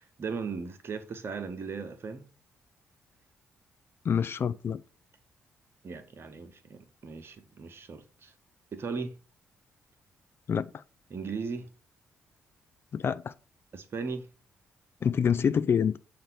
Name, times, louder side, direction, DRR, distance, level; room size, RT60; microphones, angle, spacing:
voice 1, 0.0-2.3 5.8-8.3 8.7-9.1 11.1-11.7 13.7-14.3, right 5 dB, 45° right, 1.0 m, -37 dB
voice 2, 4.0-4.8 10.5-10.8 12.9-13.3 15.0-16.0, left 7 dB, 40° left, 0.4 m, -26 dB
7.6 x 2.6 x 5.7 m
figure-of-eight pair, 40°, 6 cm